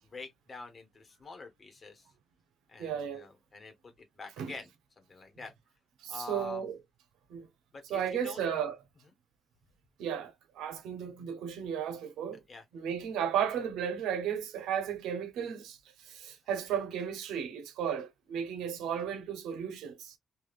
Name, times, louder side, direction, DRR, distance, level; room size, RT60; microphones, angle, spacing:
voice 1, 0.0-2.1 2.7-4.7 5.0-5.5 6.1-6.6 7.7-8.4 12.5-12.6, left 3 dB, 35° left, 1.2 m, -46 dB
voice 2, 2.8-3.2 4.4-4.5 6.0-6.7 7.3-7.5 7.9-8.8 10.0-12.4 12.7-20.2, right 8 dB, 85° right, 0.9 m, -34 dB
3.4 x 2.6 x 2.4 m
cardioid pair, 90°, 0 cm